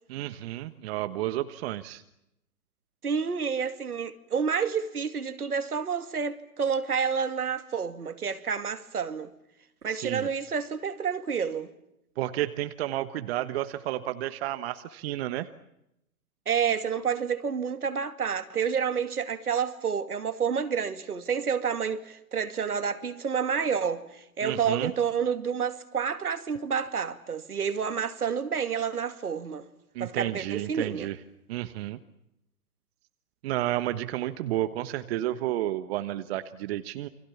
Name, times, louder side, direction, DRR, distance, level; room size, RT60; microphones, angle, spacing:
voice 1, 0.1-2.0 9.9-10.3 12.2-15.5 24.4-24.9 29.9-31.2 31.5-32.0 33.4-37.1, right 14 dB, 40° right, 1.4 m, -31 dB
voice 2, 3.0-9.3 9.8-11.7 16.5-29.7 30.0-31.1, right 6 dB, 75° right, 2.5 m, -29 dB
29.0 x 25.0 x 7.3 m
figure-of-eight pair, 120°, 45 cm